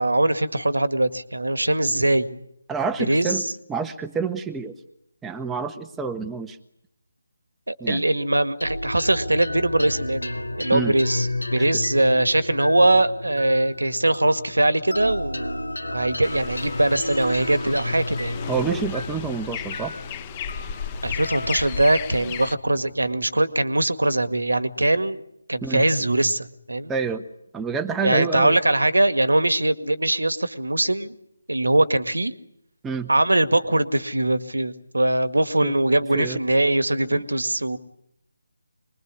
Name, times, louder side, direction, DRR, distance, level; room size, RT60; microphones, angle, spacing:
voice 1, 0.0-2.4 3.1-3.3 7.7-15.6 15.9-18.4 21.0-25.2 25.5-26.9 28.0-31.1 31.5-32.3 33.1-37.8, right 1 dB, 80° right, 12 dB, 1.9 m, -21 dB
voice 2, 2.7-4.8 5.2-6.6 7.8-8.0 10.7-11.6 18.5-19.9 25.6-25.9 26.9-27.2 27.5-28.6 32.8-33.1 35.6-35.7 36.1-36.4 37.1-37.2, right 5 dB, 5° right, 5 dB, 1.2 m, -28 dB
sound 1, 8.6-23.3, left 1 dB, 90° left, 2.7 m, -32 dB
sound 2, 16.2-22.5, left 8 dB, 25° left, 1.1 m, -35 dB
25.5 x 21.5 x 9.7 m, 0.76 s
figure-of-eight pair, 155°, 0 cm